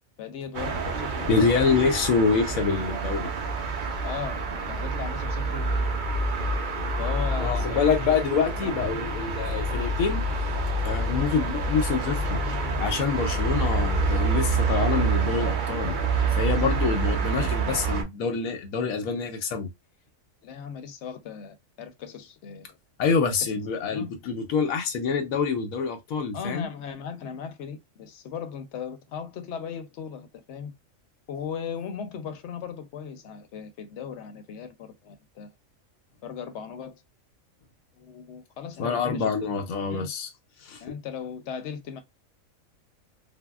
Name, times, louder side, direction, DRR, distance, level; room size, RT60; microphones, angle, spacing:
voice 1, 0.2-1.8 4.0-5.9 7.0-8.2 8.6-9.0 9.7-9.9 20.4-22.8 23.9-24.1 26.3-30.7 31.3-35.5 36.2-37.0 38.0-39.5 39.9-40.1 40.8-42.0, left 7 dB, 65° left, 0.8 m, -37 dB
sound 1, 0.5-18.0, right 3 dB, 50° right, 0.6 m, -27 dB
voice 2, 1.3-3.3 7.4-10.2 10.8-16.0 16.3-19.7 23.0-26.7 38.8-40.3 40.6-40.8, left 5 dB, 90° left, 1.1 m, -26 dB
3.4 x 2.2 x 2.3 m
omnidirectional pair, 1.4 m